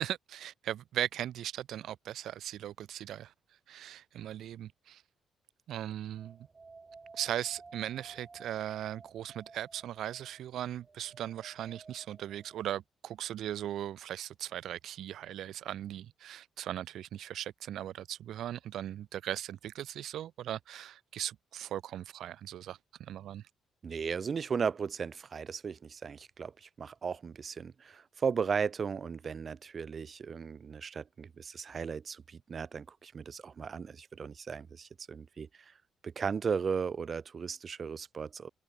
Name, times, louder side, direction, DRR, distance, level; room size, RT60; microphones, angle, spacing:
voice 1, 0.0-3.3 3.7-5.0 5.7-6.5 7.1-23.4, right 11 dB, 75° right, 2.5 m, -38 dB
sound 1, 6.1-12.6, right 4 dB, 30° right, 4.7 m, -55 dB
voice 2, 23.8-35.7 36.0-38.5, right 6 dB, 45° right, 3.1 m, -36 dB
open air
cardioid pair, 90°, 0 cm